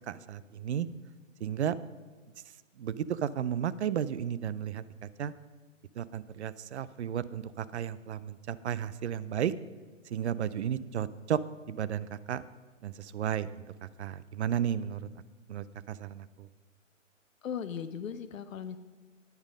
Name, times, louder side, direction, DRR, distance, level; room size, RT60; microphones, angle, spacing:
voice 1, 0.1-0.9 1.4-1.8 2.8-5.3 6.0-9.5 10.1-11.4 11.7-12.4 12.8-13.6 14.0-15.0 15.5-16.5, right 9 dB, 60° right, 17 dB, 0.5 m, -33 dB
voice 2, 17.4-18.8, left 7 dB, 85° left, 10 dB, 0.7 m, -37 dB
9.7 x 8.9 x 5.2 m, 1.4 s
hypercardioid pair, 155°, 39 cm